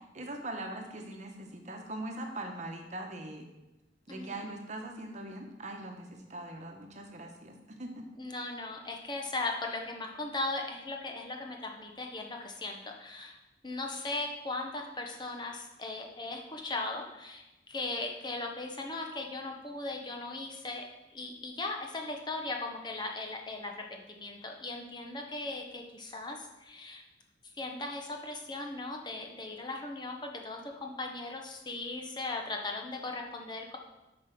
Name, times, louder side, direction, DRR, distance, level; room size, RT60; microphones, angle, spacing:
voice 1, 0.1-3.5 4.1-8.1, right 1 dB, 40° right, 3 dB, 1.2 m, -41 dB
voice 2, 8.2-13.4 13.6-20.8 21.1-27.0 27.6-33.8, left 2 dB, 25° left, 2 dB, 1.0 m, -38 dB
8.4 x 5.3 x 6.0 m, 0.98 s
head